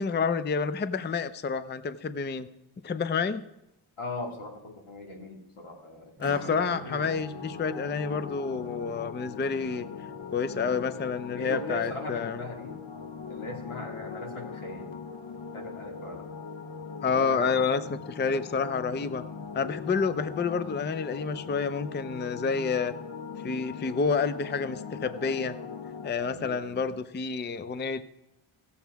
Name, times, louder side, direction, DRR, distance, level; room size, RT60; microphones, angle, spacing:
voice 1, 0.0-2.5 2.8-3.4 6.2-9.9 10.3-12.4 17.0-19.2 19.5-22.9 23.4-25.6 26.0-28.0, left 5 dB, 25° left, 13 dB, 0.4 m, -29 dB
voice 2, 4.0-7.1 11.3-12.8 13.3-14.9 15.5-16.2 17.1-17.6 20.0-20.4 26.2-26.9, left 2 dB, 90° left, 1 dB, 2.1 m, -39 dB
Acoustic guitar / Strum, 6.2-12.4, right 3 dB, 30° right, 1.9 m, -48 dB
sound 1, 6.7-26.1, left 5 dB, 70° left, 0.8 m, -41 dB
16.0 x 7.1 x 4.6 m, 0.87 s
wide cardioid pair, 100°, 48 cm